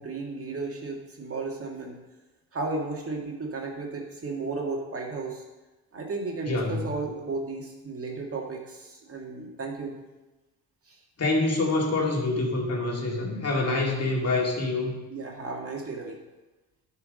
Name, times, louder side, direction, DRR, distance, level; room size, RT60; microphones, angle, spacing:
voice 1, 0.0-2.0 2.5-5.4 5.9-10.0 10.9-11.0 15.1-16.2, right 3 dB, 35° right, 0 dB, 1.9 m, -34 dB
voice 2, 6.5-6.8 11.2-15.0, left 2 dB, 40° left, -1 dB, 2.4 m, -26 dB
9.9 x 4.8 x 5.3 m, 1.1 s
hypercardioid pair, 60°, 38 cm